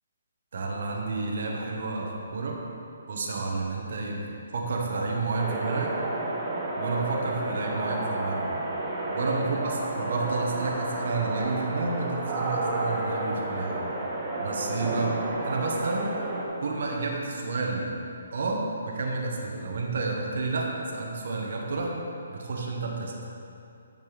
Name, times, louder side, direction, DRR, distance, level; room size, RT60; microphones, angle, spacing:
voice 1, 0.5-2.6 3.1-5.9 6.8-8.5 9.1-13.8 14.4-15.1 15.4-16.1 16.6-17.9 18.3-21.9 22.3-23.1, right 3 dB, 60° right, 0 dB, 1.3 m, -30 dB
sound 1, 5.4-16.4, right 2 dB, 25° right, 1.2 m, -31 dB
8.0 x 5.4 x 4.9 m, 2.6 s
figure-of-eight pair, 140°, 0 cm